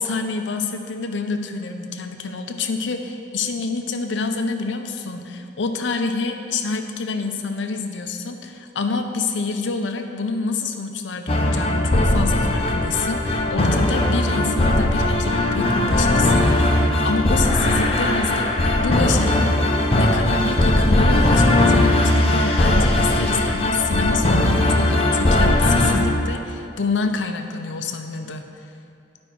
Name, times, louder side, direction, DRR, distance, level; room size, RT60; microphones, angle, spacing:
voice 1, 0.0-19.6 19.9-28.5, left 4 dB, 85° left, 5 dB, 0.6 m, -27 dB
sound 1, 11.3-26.0, left 1 dB, 30° left, 0.7 m, -19 dB
10.5 x 5.3 x 4.6 m, 2.5 s
head